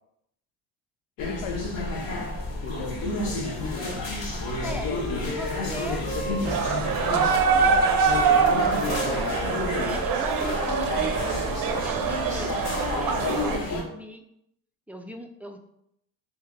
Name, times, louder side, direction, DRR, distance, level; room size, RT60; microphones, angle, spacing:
voice 1, 1.2-2.3 2.6-4.0 4.5-5.3 5.6-7.2, left 7 dB, 85° left, 7 dB, 0.6 m, -37 dB
sound 1, 1.2-13.8, left 2 dB, 55° left, 1.2 m, -30 dB
Wind instrument woodwind instrument, 4.5-7.4 7.7-11.2, right 1 dB, 25° left, 1.2 m, -38 dB
voice 2, 5.3-6.0 7.5-8.7 9.0-14.2 14.9-15.6, right 1 dB, 5° right, 4 dB, 0.3 m, -39 dB
sound 2, 6.5-13.6, right 6 dB, 55° right, 0.6 m, -24 dB
3.2 x 2.9 x 3.6 m, 0.78 s
supercardioid pair, 65°, 42 cm